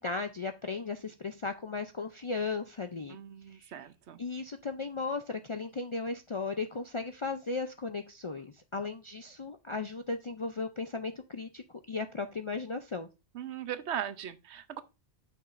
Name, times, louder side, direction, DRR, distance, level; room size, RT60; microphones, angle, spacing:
voice 1, 0.0-3.2 3.5-3.7 4.2-13.1, left 4 dB, 45° left, 0.4 m, -36 dB
voice 2, 3.1-4.2 13.3-14.8, right 9 dB, 75° right, 1.0 m, -39 dB
8.6 x 6.3 x 2.5 m
omnidirectional pair, 1.2 m